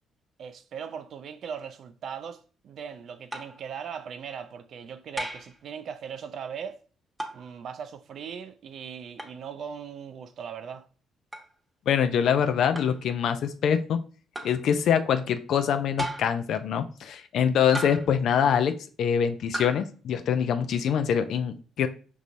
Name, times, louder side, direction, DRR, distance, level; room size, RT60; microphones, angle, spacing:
voice 1, 0.4-6.8 7.3-10.9, right 7 dB, 60° right, 0.4 m, -39 dB
sound 1, 3.3-3.6 5.2-5.6 7.2-7.5 9.2-9.4 11.3-11.5 12.8-13.0 14.3-14.6 16.0-16.4 17.7-18.2 19.5-19.8, right 1 dB, 20° right, 1.0 m, -35 dB
voice 2, 11.9-14.0 14.4-21.9, left 8 dB, 65° left, 0.5 m, -24 dB
5.4 x 3.0 x 2.6 m
hypercardioid pair, 45°, 0 cm